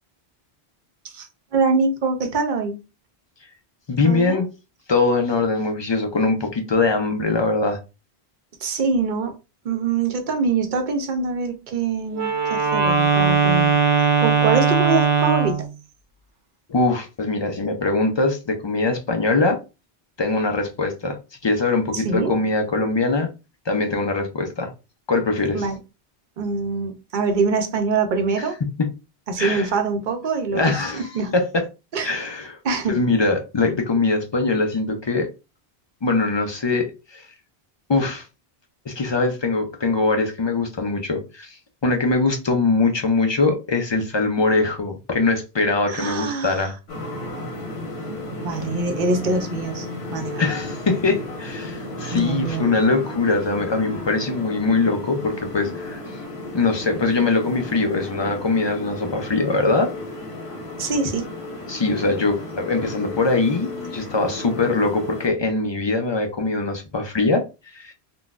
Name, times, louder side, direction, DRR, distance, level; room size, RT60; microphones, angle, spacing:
voice 1, 1.0-2.8 4.0-4.4 8.6-9.4 9.6-13.8 14.2-15.7 21.9-22.3 25.5-25.8 26.4-28.6 29.3-31.3 31.9-32.2 32.6-33.0 45.9-46.7 48.4-50.5 52.1-52.7 60.8-61.3, right 4 dB, 55° right, 0.7 m, -24 dB
voice 2, 3.9-4.5 4.9-7.8 16.7-19.6 20.2-23.3 23.7-24.7 25.1-25.7 28.8-28.9 29.4-29.7 30.5-31.1 31.3-31.6 32.0-32.6 32.9-35.3 36.0-37.3 37.9-38.3 38.9-46.7 50.4-56.2 56.5-59.9 61.7-67.5 67.7-67.9, left 3 dB, 45° left, 0.3 m, -22 dB
Wind instrument woodwind instrument, 12.1-15.7, right 5 dB, 85° right, 0.9 m, -19 dB
sound 1, 46.9-65.3, left 2 dB, 80° left, 1.2 m, -34 dB
3.8 x 2.2 x 2.4 m
omnidirectional pair, 1.1 m